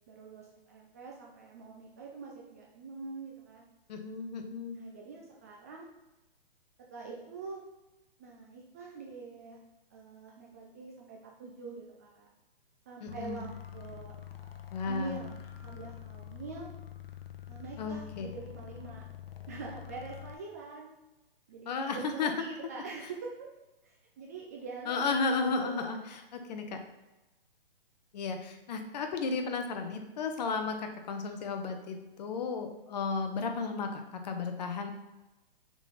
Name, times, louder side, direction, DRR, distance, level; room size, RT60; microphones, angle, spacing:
voice 1, 0.1-3.6 4.7-5.9 6.9-7.6 8.2-9.6 9.9-12.3 12.9-14.1 14.8-16.7 17.5-19.1 19.5-20.9 21.5-23.5 23.8-26.0, right 4 dB, 15° right, -2 dB, 0.4 m, -44 dB
voice 2, 3.9-4.8 13.0-13.4 14.7-15.2 17.8-18.3 21.7-22.3 24.9-26.0 26.3-26.8 28.1-34.9, left 4 dB, 45° left, 5 dB, 0.9 m, -34 dB
sound 1, 13.1-20.4, left 11 dB, 80° left, 0.8 m, -46 dB
6.1 x 3.9 x 3.9 m, 1.0 s
hypercardioid pair, 145°, 29 cm